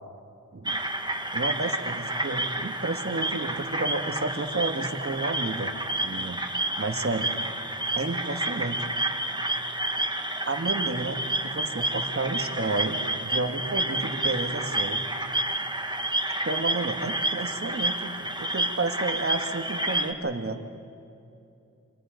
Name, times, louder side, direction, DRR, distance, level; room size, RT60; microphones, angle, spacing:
sound 1, 0.6-20.1, right 1 dB, 15° right, 1.8 m, -30 dB
voice 1, 1.3-5.7 6.0-6.4 6.8-7.3 7.9-8.8 10.4-15.0 16.3-20.6, right 3 dB, 45° right, 6 dB, 1.9 m, -31 dB
28.0 x 26.5 x 5.3 m, 2.6 s
wide cardioid pair, 65°, 32 cm